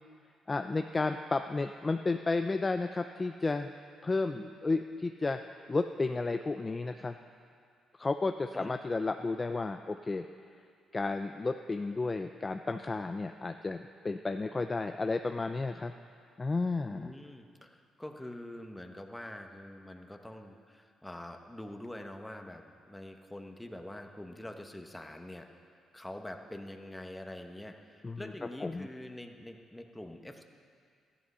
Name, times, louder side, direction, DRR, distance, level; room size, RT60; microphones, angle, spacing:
voice 1, 0.5-3.7 4.0-7.1 8.0-10.3 10.9-15.9 16.4-17.1 28.0-28.3 28.6-28.9, left 3 dB, 25° left, 7 dB, 0.4 m, -32 dB
voice 2, 16.9-25.5 25.9-30.4, left 1 dB, 10° left, 4 dB, 1.1 m, -45 dB
13.5 x 11.5 x 5.6 m, 2.3 s
cardioid pair, 90°, 0 cm